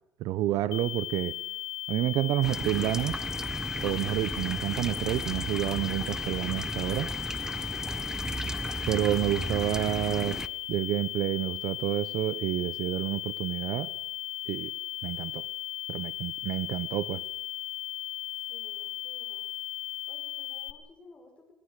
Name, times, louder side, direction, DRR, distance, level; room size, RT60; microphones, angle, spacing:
voice 1, 0.2-1.4 1.9-3.2 3.8-7.1 8.9-10.4 10.7-13.9 14.5-14.7 15.0-15.4 15.9-17.2, right 14 dB, 60° right, 18 dB, 0.8 m, -29 dB
sound 1, 0.7-20.7, left 15 dB, 80° left, 1.6 m, -37 dB
sound 2, 2.4-10.5, right 2 dB, 5° right, 0.8 m, -35 dB
voice 2, 7.7-8.1 18.5-19.5 20.1-21.5, left 3 dB, 15° left, 3 dB, 5.6 m, -55 dB
26.0 x 20.5 x 6.6 m, 0.84 s
cardioid pair, 145°, 7 cm